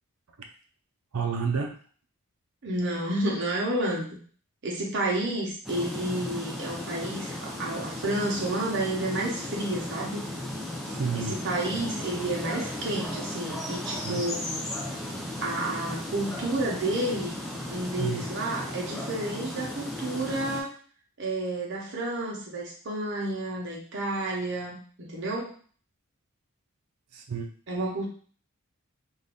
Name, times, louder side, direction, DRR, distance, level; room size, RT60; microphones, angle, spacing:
voice 1, 1.1-1.7 10.8-11.4 14.0-14.2 18.0-18.2 27.1-27.5, right 5 dB, 90° right, 5 dB, 0.5 m, -30 dB
voice 2, 2.6-4.1 4.6-10.3 11.1-14.7 15.4-17.3 17.7-20.8 21.2-25.5 27.7-28.1, right 1 dB, 55° right, -2 dB, 0.9 m, -30 dB
sound 1, 5.6-20.6, left 1 dB, ahead, 0.5 m, -35 dB
2.6 x 2.5 x 3.5 m, 0.44 s
head